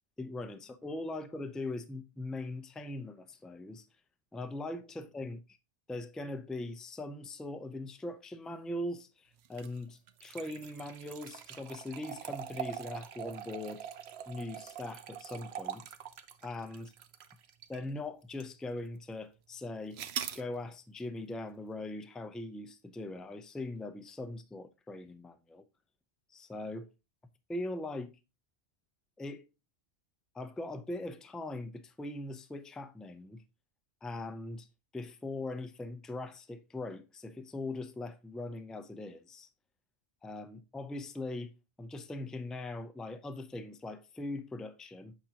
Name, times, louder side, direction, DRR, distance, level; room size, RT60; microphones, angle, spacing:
voice 1, 0.2-3.9 4.3-5.6 5.9-13.8 14.3-15.8 16.4-16.9 17.7-20.0 20.3-25.6 26.3-26.9 27.5-28.2 29.2-29.5 30.3-33.4 34.0-34.7 34.9-39.5 40.2-41.5 41.8-45.1, left 2 dB, ahead, 0.4 m, -41 dB
sound 1, 9.4-17.9 18.4-18.5 19.9-20.4, right 9 dB, 75° right, 0.9 m, -43 dB
8.5 x 5.9 x 2.9 m
omnidirectional pair, 1.1 m